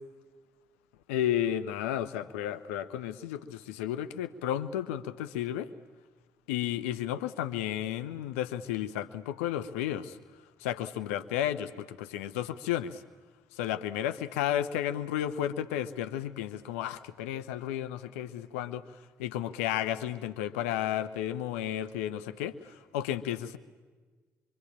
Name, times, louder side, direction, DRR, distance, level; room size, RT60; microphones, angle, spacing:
voice 1, 1.1-5.7 6.5-10.2 10.6-13.0 13.5-23.6, left 11 dB, 80° left, 12 dB, 0.9 m, -33 dB
26.0 x 24.5 x 8.8 m, 1.4 s
hypercardioid pair, 40°, 7 cm